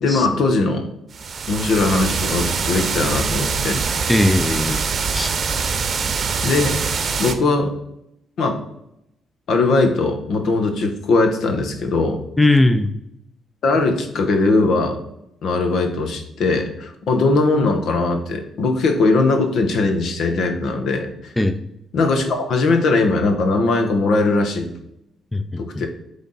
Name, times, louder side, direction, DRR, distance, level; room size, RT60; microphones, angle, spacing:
voice 1, 0.0-0.9 1.5-3.8 6.4-6.8 7.2-7.7 8.4-8.6 9.5-12.2 13.6-15.0 15.4-21.3 21.9-24.7 25.6-25.9, left 3 dB, 70° left, 6 dB, 1.1 m, -19 dB
sound 1, 1.1-7.3, right 5 dB, 45° right, 0.8 m, -23 dB
voice 2, 4.1-4.8 5.1-5.3 12.4-12.9 21.4-21.6 25.3-25.9, left 2 dB, 10° left, 7 dB, 0.5 m, -18 dB
8.3 x 3.5 x 4.1 m, 0.79 s
cardioid pair, 90°, 0 cm